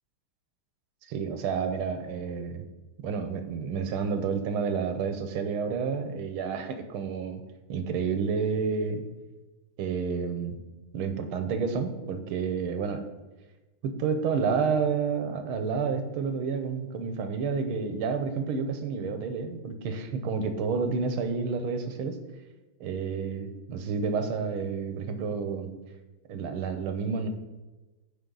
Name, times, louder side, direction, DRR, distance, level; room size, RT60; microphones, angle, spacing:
voice 1, 1.1-2.7 3.0-7.4 7.7-9.0 9.8-10.6 10.9-13.1 13.8-22.2 22.8-25.7 26.3-27.3, right 5 dB, 85° right, 7 dB, 1.8 m, -30 dB
13.5 x 5.3 x 4.0 m, 1.1 s
omnidirectional pair, 2.3 m